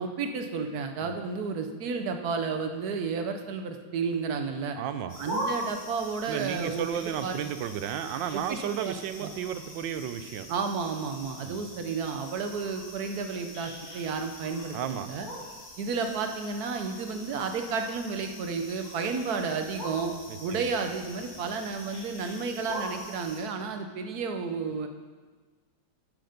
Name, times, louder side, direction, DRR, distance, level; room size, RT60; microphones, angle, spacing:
voice 1, 0.0-4.8 5.2-6.8 7.2-7.4 8.3-9.3 10.5-15.3 15.8-20.1 20.4-24.9, right 5 dB, 60° right, 6 dB, 1.3 m, -32 dB
voice 2, 4.8-5.2 6.3-10.5 11.4-11.6 14.7-15.1 20.5-20.6, right 9 dB, 85° right, 11 dB, 1.3 m, -33 dB
sound 1, 5.1-23.4, equal, 25° left, 2.8 m, -42 dB
12.0 x 6.9 x 5.1 m, 1.4 s
omnidirectional pair, 2.0 m